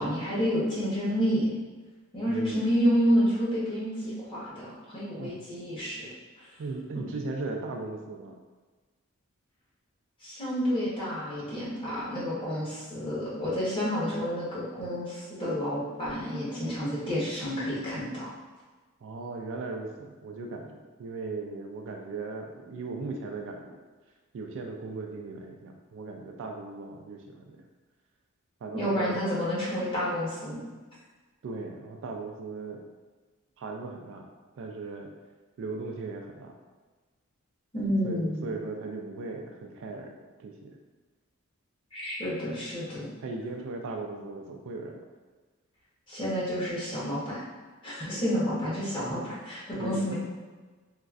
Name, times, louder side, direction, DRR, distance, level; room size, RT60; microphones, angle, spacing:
voice 1, 0.0-1.5 2.1-6.1 10.2-18.3 28.7-30.6 37.7-38.4 41.9-43.1 46.1-47.4 47.8-50.1, equal, 25° left, -9 dB, 1.0 m, -29 dB
voice 2, 2.3-2.7 5.1-5.4 6.6-8.4 19.0-23.8 24.3-27.6 28.6-29.2 31.4-32.8 33.6-34.3 34.5-35.1 35.6-36.5 38.0-40.1 40.4-40.8 43.2-45.1 48.6-48.7 49.8-50.0, right 3 dB, 60° right, 2 dB, 0.3 m, -37 dB
3.0 x 2.5 x 2.4 m, 1.3 s
head